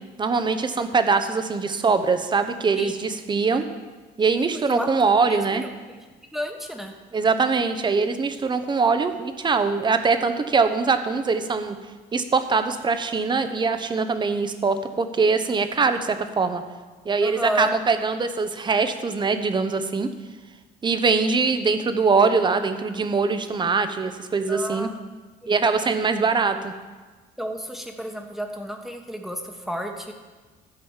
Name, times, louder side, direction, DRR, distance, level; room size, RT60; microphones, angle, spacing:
voice 1, 0.2-3.7 4.2-5.7 7.1-11.8 12.1-16.6 17.0-20.1 20.8-24.9 25.5-26.7, right 4 dB, 25° right, 9 dB, 0.9 m, -22 dB
voice 2, 4.4-6.0 6.3-6.9 17.2-17.7 22.6-22.7 24.5-25.1 25.4-25.5 27.4-30.1, equal, ahead, 3 dB, 1.3 m, -32 dB
13.5 x 5.3 x 7.3 m, 1.3 s
cardioid pair, 110°, 17 cm